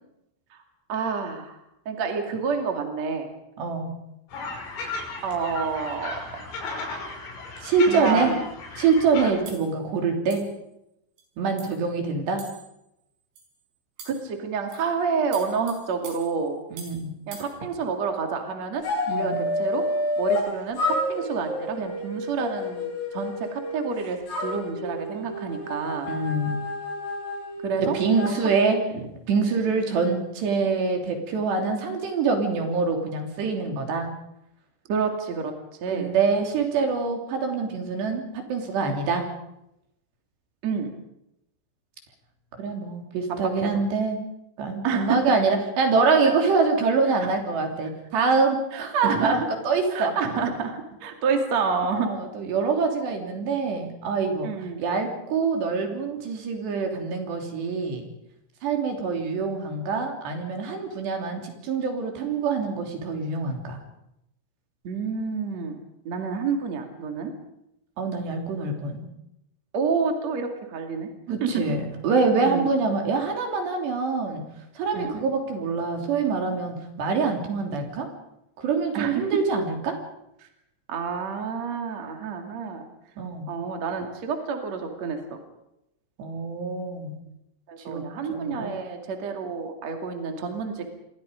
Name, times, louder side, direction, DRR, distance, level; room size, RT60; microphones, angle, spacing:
voice 1, 0.9-1.6 1.9-3.3 5.2-6.5 7.9-8.4 14.0-16.6 17.3-18.8 19.1-19.8 20.2-26.1 27.6-28.0 28.9-29.1 34.9-35.5 35.8-36.1 40.6-40.9 43.3-43.7 44.8-45.2 46.2-46.3 48.7-49.5 49.9-52.1 54.4-54.8 64.8-65.8 66.0-67.3 69.7-71.6 72.4-72.7 74.9-75.2 78.9-79.3 80.4-80.5 80.9-82.9 83.5-85.4 87.7-90.8, right 5 dB, 40° right, 4 dB, 2.8 m, -28 dB
voice 2, 3.6-3.9 7.6-8.3 8.8-10.4 11.4-12.4 16.7-17.1 19.1-19.4 26.1-26.6 27.8-28.8 29.3-34.1 35.9-39.3 42.6-44.2 44.6-50.1 51.9-54.5 54.8-58.0 58.6-63.8 68.0-69.0 71.3-74.4 74.8-78.1 78.6-80.0 83.2-83.5 86.2-87.1 87.9-88.0 88.3-88.8, right 4 dB, 60° right, 3 dB, 4.9 m, -25 dB
sound 1, 4.3-9.3, left 3 dB, 65° left, 8.1 m, -35 dB
sound 2, 9.5-9.7 10.3-10.6 11.2-11.3 11.6-11.8 12.4-12.8 13.4-13.5 14.0-14.3 14.7-14.9 15.3-17.0 17.3-17.5, right 5 dB, 85° right, 8.2 m, -44 dB
sound 3, 18.8-20.5 20.8-23.9 24.3-28.3, left 1 dB, 50° left, 9.6 m, -29 dB
28.5 x 23.0 x 5.2 m, 0.83 s
omnidirectional pair, 6.0 m